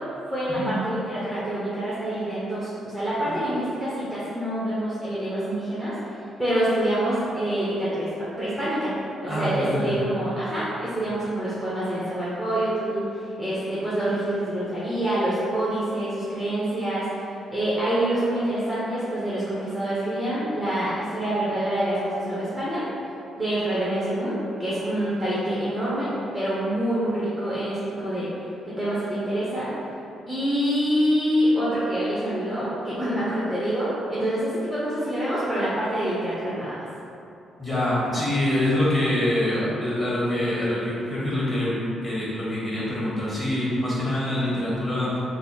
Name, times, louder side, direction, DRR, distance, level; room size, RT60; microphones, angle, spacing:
voice 1, 0.0-8.9 9.2-22.8 23.4-28.3 28.6-29.7 30.3-36.9, right 1 dB, 5° right, -10 dB, 0.8 m, -26 dB
voice 2, 9.3-9.9 37.6-41.8 42.0-45.1, left 1 dB, 20° left, -9 dB, 1.4 m, -25 dB
3.3 x 2.1 x 4.1 m, 2.8 s
cardioid pair, 90°, 0 cm